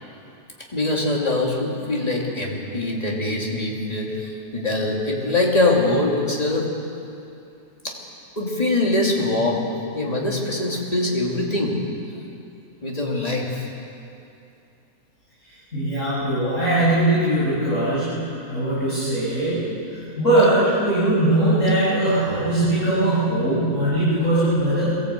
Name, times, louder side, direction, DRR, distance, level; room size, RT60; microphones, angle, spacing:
voice 1, 0.7-6.7 7.8-7.9 8.4-9.6 9.9-11.8 12.8-13.7, left 2 dB, 25° left, -2 dB, 2.8 m, -23 dB
voice 2, 15.7-25.0, right 1 dB, 55° left, -11 dB, 6.7 m, -21 dB
22.5 x 14.0 x 8.3 m, 2.6 s
omnidirectional pair, 1.6 m